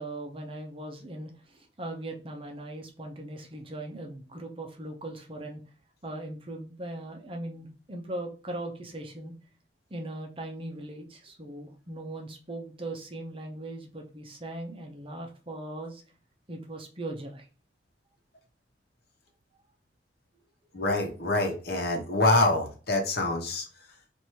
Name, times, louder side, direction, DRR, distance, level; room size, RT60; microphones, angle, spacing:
voice 1, 0.0-5.6 6.0-9.4 9.9-16.0 16.5-17.5 20.7-20.8, right 1 dB, 30° right, 2 dB, 0.7 m, -39 dB
voice 2, 20.7-23.6, left 2 dB, 55° left, 2 dB, 1.1 m, -25 dB
3.2 x 2.6 x 4.3 m, 0.36 s
head